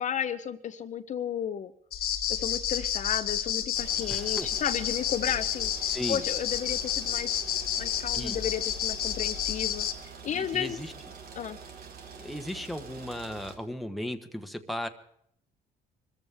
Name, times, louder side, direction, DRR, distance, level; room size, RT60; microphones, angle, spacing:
voice 1, 0.0-1.7 2.3-5.7 6.1-7.4 7.8-10.8 11.3-11.6, left 9 dB, 45° left, 9 dB, 0.7 m, -33 dB
sound 1, 1.9-9.9, left 10 dB, 70° left, 1.6 m, -30 dB
sound 2, 3.7-13.6, right 6 dB, 65° right, 2.7 m, -46 dB
voice 2, 4.1-4.5 5.9-6.2 8.1-8.4 10.3-10.9 12.2-14.9, left 1 dB, ahead, 6 dB, 1.2 m, -36 dB
24.5 x 14.0 x 3.5 m, 0.68 s
cardioid pair, 110°, 17 cm